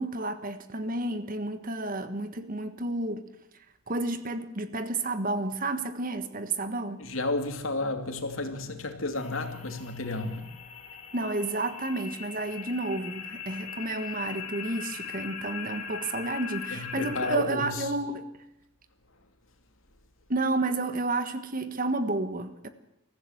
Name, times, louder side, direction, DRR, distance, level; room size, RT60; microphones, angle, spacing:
voice 1, 0.0-3.2 3.9-7.0 11.1-18.3 20.3-22.7, right 2 dB, 40° right, 1.5 m, -31 dB
voice 2, 7.0-10.6 16.7-18.0, left 2 dB, 80° left, 2.6 m, -32 dB
sound 1, 9.2-17.4, left 7 dB, 35° left, 3.1 m, -40 dB
23.0 x 15.0 x 8.0 m
head